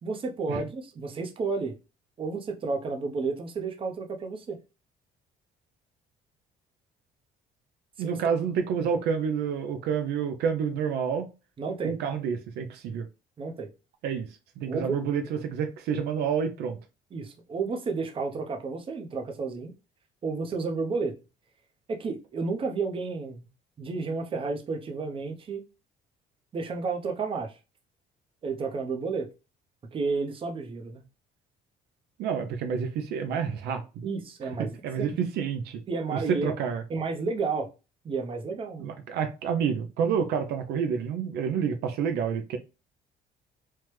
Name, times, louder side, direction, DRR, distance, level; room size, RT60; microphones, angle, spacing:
voice 1, 0.0-1.7 2.2-4.6 8.0-8.2 11.6-11.9 13.4-13.7 14.7-15.0 17.1-19.7 20.2-21.1 21.9-23.5 23.8-25.6 26.5-27.5 28.4-29.3 29.9-31.0 34.0-35.2 35.9-36.5 36.9-37.7 38.0-38.9, right 4 dB, 30° right, 0.6 m, -31 dB
voice 2, 8.0-11.3 11.8-13.1 14.0-16.8 32.2-34.1 34.6-35.8 36.1-36.8 38.8-42.6, right 7 dB, 75° right, 0.5 m, -29 dB
3.2 x 2.1 x 3.1 m
cardioid pair, 110°, 17 cm